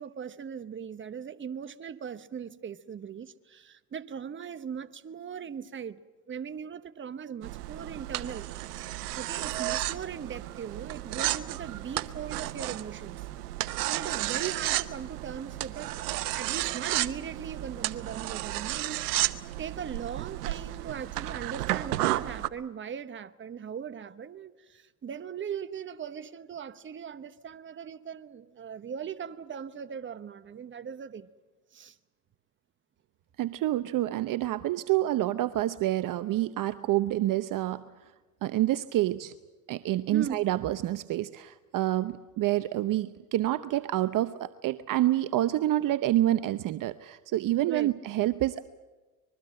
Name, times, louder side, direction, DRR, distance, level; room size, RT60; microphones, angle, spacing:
voice 1, 0.0-6.0 6.3-8.5 9.1-13.2 13.9-16.0 16.3-31.3 31.7-32.0 40.1-40.5 47.7-48.0, right 7 dB, 25° right, 1.1 m, -39 dB
sound 1, 7.4-22.5, right 16 dB, 85° right, 1.0 m, -33 dB
voice 2, 33.4-37.8 38.4-39.3 39.7-48.6, right 14 dB, 45° right, 0.8 m, -28 dB
25.0 x 21.5 x 7.7 m
hypercardioid pair, 90°, 45 cm